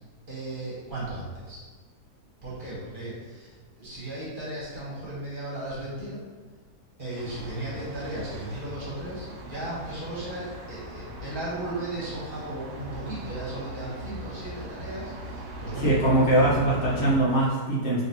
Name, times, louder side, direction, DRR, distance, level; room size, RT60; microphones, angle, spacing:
voice 1, 0.3-1.6 2.4-6.2 7.0-15.9, right 1 dB, 35° right, -8 dB, 1.3 m, -36 dB
Thunder, 7.1-17.2, right 1 dB, 80° right, 1.2 m, -38 dB
voice 2, 15.7-18.0, right 1 dB, 45° left, -6 dB, 1.2 m, -22 dB
5.0 x 2.9 x 2.8 m, 1.4 s
omnidirectional pair, 1.7 m